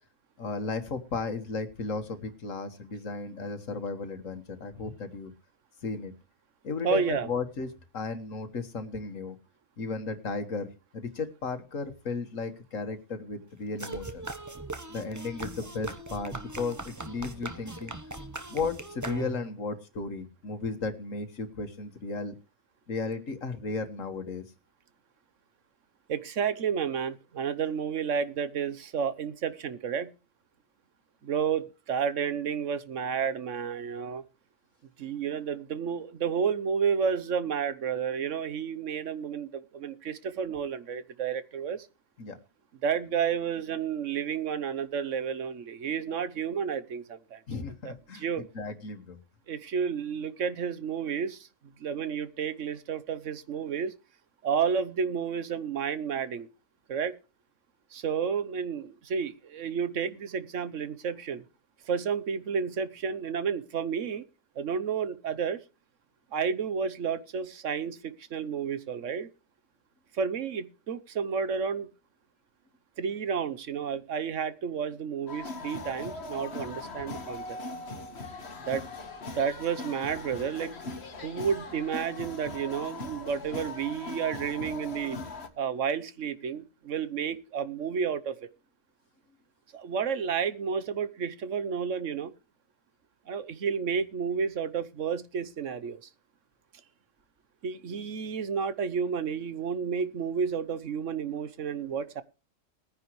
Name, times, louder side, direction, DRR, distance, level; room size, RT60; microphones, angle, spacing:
voice 1, 0.4-5.3 5.8-6.1 6.6-9.4 9.8-14.3 14.9-17.9 18.5-22.4 22.9-24.4 42.2-42.4 47.5-49.2, left 4 dB, 80° left, 9 dB, 1.9 m, -35 dB
voice 2, 6.8-7.3 26.1-30.1 31.2-34.2 35.0-41.9 42.8-47.4 47.8-48.4 49.5-51.5 51.8-53.9 54.4-56.5 56.9-57.1 57.9-61.4 61.9-64.2 64.6-65.6 66.3-69.3 70.1-71.9 73.0-77.6 78.7-78.8 79.3-80.7 81.2-85.2 85.6-88.3 89.7-92.3 93.3-96.0 97.6-102.2, right 7 dB, 70° right, 14 dB, 1.3 m, -31 dB
sound 1, 13.8-19.6, right 2 dB, 15° right, 0.9 m, -39 dB
sound 2, 75.3-85.5, left 3 dB, 55° left, 1.8 m, -40 dB
20.0 x 9.9 x 3.2 m, 0.32 s
omnidirectional pair, 1.3 m